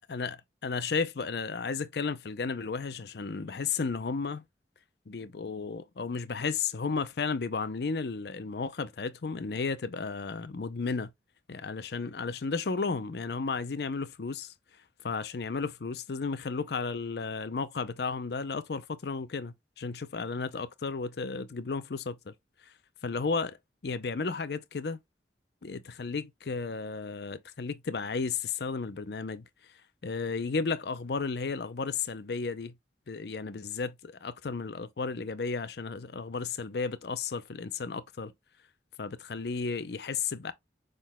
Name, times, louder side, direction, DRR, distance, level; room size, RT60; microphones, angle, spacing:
voice 1, 0.1-4.4 5.1-11.1 11.5-14.5 15.0-22.3 22.6-22.7 23.0-23.6 23.8-25.0 25.6-29.4 30.0-32.7 33.1-38.3 39.0-40.5, left 4 dB, 70° left, 0.5 m, -33 dB
6.4 x 3.8 x 2.2 m
head